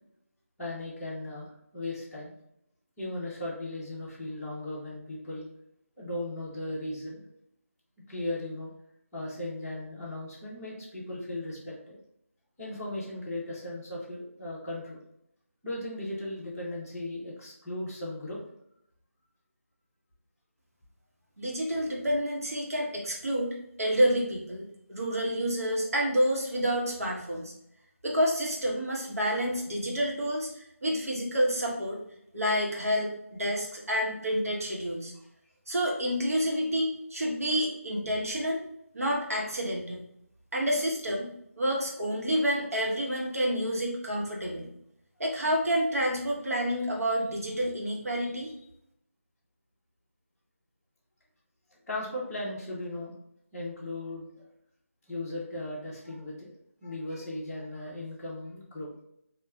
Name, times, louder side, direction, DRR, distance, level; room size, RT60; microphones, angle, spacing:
voice 1, 0.6-2.3 3.0-5.5 6.0-7.2 8.1-8.7 9.1-12.0 12.6-15.0 15.6-18.4 51.9-53.1 53.5-54.4 55.1-56.5 56.8-58.9, left 1 dB, 5° left, -11 dB, 0.7 m, -37 dB
voice 2, 21.4-27.5 28.0-32.0 32.3-35.1 35.7-38.6 38.9-40.0 40.5-41.3 41.6-44.7 45.2-48.5, equal, 75° right, -2 dB, 1.2 m, -29 dB
4.1 x 2.4 x 2.3 m, 0.77 s
figure-of-eight pair, 165°, 8 cm